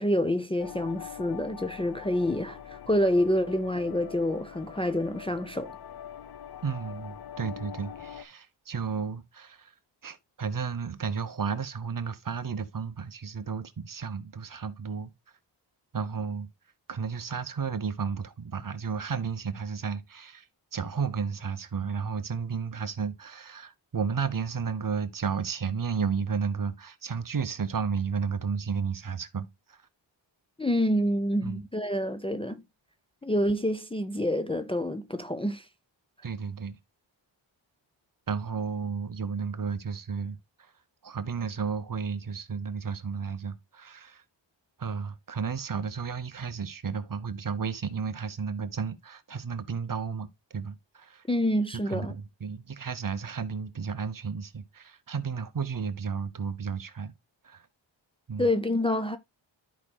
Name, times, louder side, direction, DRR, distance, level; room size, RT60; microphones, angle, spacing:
voice 1, 0.0-5.7 30.6-32.6 33.2-35.7 51.3-52.1 58.4-59.2, left 1 dB, 10° left, 0.5 m, -27 dB
sound 1, 0.6-8.2, left 9 dB, 50° left, 0.8 m, -43 dB
voice 2, 6.6-9.7 10.0-15.1 15.9-16.5 16.9-20.4 20.7-29.5 31.4-31.6 36.2-36.8 38.3-40.4 41.0-44.2 44.8-51.2 51.9-57.1 57.4-57.6 58.3-58.5, right 6 dB, 45° right, 0.8 m, -33 dB
13.5 x 4.9 x 2.2 m
wide cardioid pair, 125°, 47 cm